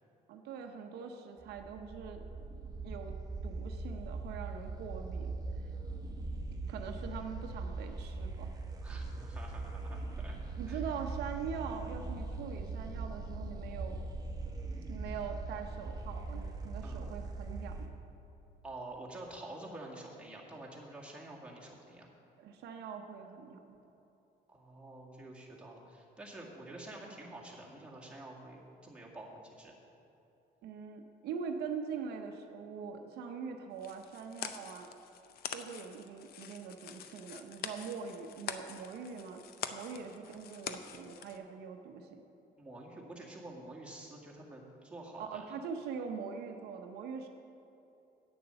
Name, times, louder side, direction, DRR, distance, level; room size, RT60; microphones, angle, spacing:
voice 1, 0.3-2.2 2.8-3.1 3.4-5.3 6.7-8.5 10.6-14.0 14.9-17.9 22.4-23.6 30.6-34.9 35.5-39.4 39.7-42.2 45.2-47.3, right 6 dB, 75° right, 4 dB, 0.8 m, -43 dB
sound 1, 1.4-17.9, right 3 dB, 20° right, 1.1 m, -41 dB
voice 2, 8.8-10.4 10.7-10.8 16.8-17.0 18.6-22.1 24.5-29.7 42.6-45.6, right 2 dB, 5° right, -4 dB, 1.9 m, -48 dB
sound 2, 33.8-41.4, left 8 dB, 65° left, 0.6 m, -45 dB
8.9 x 6.9 x 6.7 m, 3.0 s
cardioid pair, 110°, 17 cm